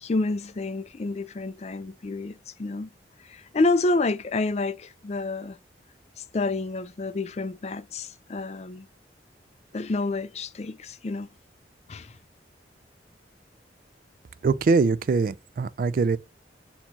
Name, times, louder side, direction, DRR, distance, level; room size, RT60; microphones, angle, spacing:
voice 1, 0.0-2.9 3.2-5.6 6.2-8.9 9.7-11.3 11.9-12.1, left 3 dB, 35° left, 0.4 m, -29 dB
voice 2, 14.4-16.2, right 4 dB, 50° right, 0.3 m, -23 dB
4.3 x 2.9 x 4.1 m
head